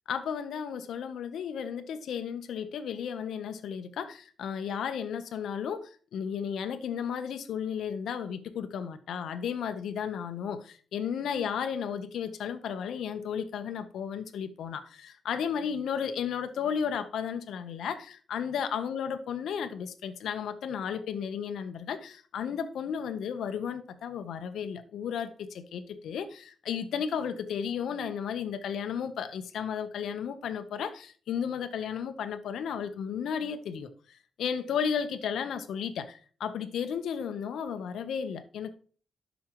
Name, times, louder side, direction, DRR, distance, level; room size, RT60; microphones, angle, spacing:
voice 1, 0.1-38.7, left 7 dB, 80° left, 0.9 m, -34 dB
12.5 x 6.3 x 3.0 m
wide cardioid pair, 170°, 0 cm